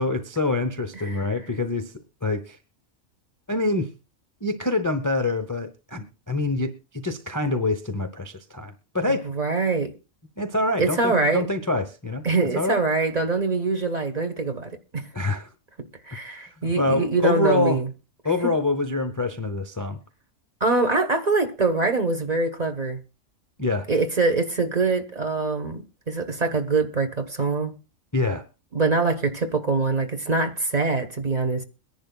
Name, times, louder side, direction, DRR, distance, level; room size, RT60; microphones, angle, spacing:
voice 1, 0.0-1.9 2.2-2.6 3.5-3.9 4.4-9.2 10.4-12.2 12.6-12.8 15.1-15.5 16.3-16.4 16.8-17.8 18.2-20.0 23.6-23.9 28.1-28.4, left 2 dB, 20° left, 0.6 m, -25 dB
voice 2, 9.1-9.9 10.8-11.5 12.2-15.0 16.1-17.9 20.6-23.0 23.9-27.7 28.7-31.6, right 3 dB, 35° right, 1.0 m, -24 dB
22.5 x 10.5 x 2.3 m
omnidirectional pair, 1.4 m